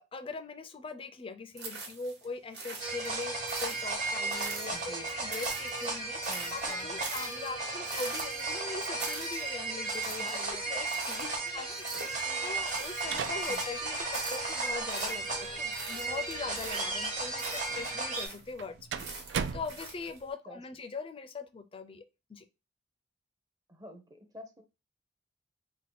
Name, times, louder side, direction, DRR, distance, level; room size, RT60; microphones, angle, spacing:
voice 1, 0.0-22.5, left 4 dB, 30° left, 9 dB, 0.4 m, -42 dB
sound 1, 1.6-2.3 2.5-5.0 5.3-13.8 14.1-15.5 15.7-18.6 19.0-20.2, right 4 dB, 65° right, 1.3 m, -44 dB
sound 2, 2.8-18.3, right 3 dB, 45° right, 1.1 m, -35 dB
voice 2, 4.7-5.1 5.9-6.0 6.3-7.1 10.1-11.0 11.4-11.7 12.2-12.6 13.5-13.6 20.5-20.6 23.7-24.6, right 1 dB, 20° right, 5 dB, 0.7 m, -50 dB
sound 3, 12.5-20.3, right 7 dB, 80° right, 0.3 m, -42 dB
3.6 x 2.1 x 3.8 m, 0.28 s
head